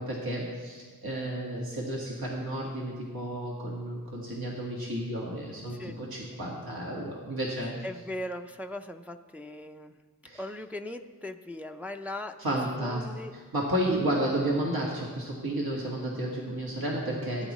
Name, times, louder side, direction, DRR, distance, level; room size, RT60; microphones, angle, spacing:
voice 1, 0.0-7.7 10.3-10.4 12.4-13.0 13.5-17.5, right 1 dB, 75° right, -3 dB, 1.8 m, -32 dB
voice 2, 7.8-9.9 10.4-12.4 12.8-13.3 17.4-17.5, left 1 dB, 5° right, 5 dB, 0.4 m, -39 dB
17.5 x 10.0 x 3.1 m, 1.5 s
wide cardioid pair, 95°, 36 cm